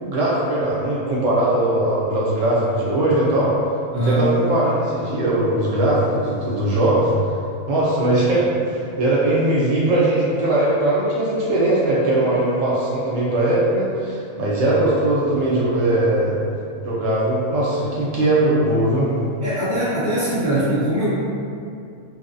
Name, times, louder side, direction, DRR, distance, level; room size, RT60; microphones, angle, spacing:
voice 1, 0.0-3.5 4.0-7.1 7.7-16.4 16.8-19.1, right 1 dB, 70° right, -6 dB, 0.9 m, -20 dB
voice 2, 3.9-4.3 19.4-21.1, right 1 dB, 15° left, -13 dB, 0.7 m, -21 dB
2.9 x 2.0 x 2.6 m, 2.4 s
omnidirectional pair, 1.4 m